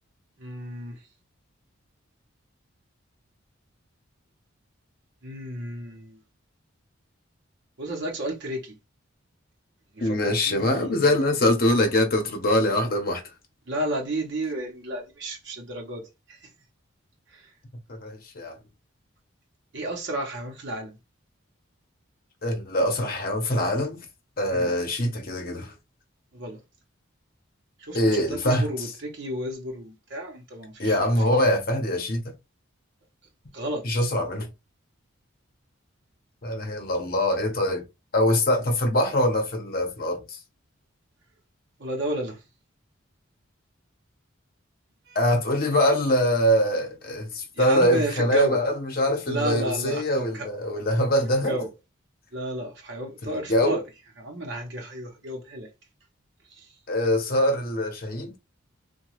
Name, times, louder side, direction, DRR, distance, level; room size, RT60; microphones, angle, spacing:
voice 1, 0.4-1.0 5.2-6.2 7.8-8.8 9.9-11.2 13.7-16.5 17.3-17.5 19.7-21.0 24.5-24.7 26.3-26.6 27.8-31.1 33.5-33.8 41.8-42.4 45.1-45.2 47.5-48.6 49.3-50.5 51.4-51.7 52.3-53.8 54.2-55.7 56.5-56.7, right 1 dB, 60° right, 0.8 m, -32 dB
voice 2, 10.0-13.2 17.9-18.6 22.4-24.1 24.4-25.7 27.9-28.9 30.8-32.3 33.8-34.5 36.4-37.8 38.1-40.4 45.1-51.6 53.2-53.8 56.9-58.3, left 1 dB, 45° left, 0.8 m, -23 dB
2.9 x 2.2 x 3.0 m
head